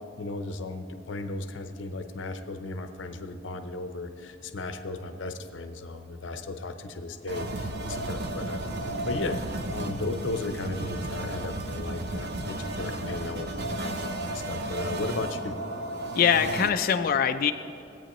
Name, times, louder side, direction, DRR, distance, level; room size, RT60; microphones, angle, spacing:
voice 1, 0.2-8.7 9.0-15.6, left 2 dB, 75° left, 8 dB, 0.7 m, -35 dB
sound 1, 7.3-16.7, right 1 dB, 60° right, 0.7 m, -33 dB
voice 2, 16.2-17.5, left 7 dB, 50° left, 8 dB, 0.4 m, -23 dB
16.5 x 8.7 x 3.0 m, 2.7 s
head